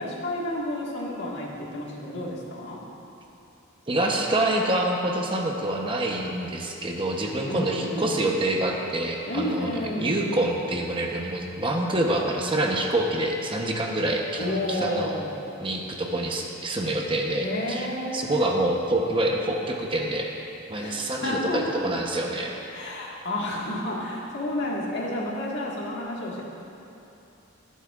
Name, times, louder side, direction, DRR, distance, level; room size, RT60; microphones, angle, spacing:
voice 1, 0.0-2.8 7.4-8.1 9.3-10.3 14.4-15.4 17.4-18.4 20.8-21.8 22.7-26.4, left 1 dB, 60° left, -3 dB, 1.8 m, -30 dB
voice 2, 3.9-9.7 10.0-15.1 15.6-17.9 18.1-20.3 20.7-22.5, right 1 dB, 25° right, 0 dB, 0.9 m, -26 dB
24.0 x 8.3 x 2.5 m, 2.9 s
head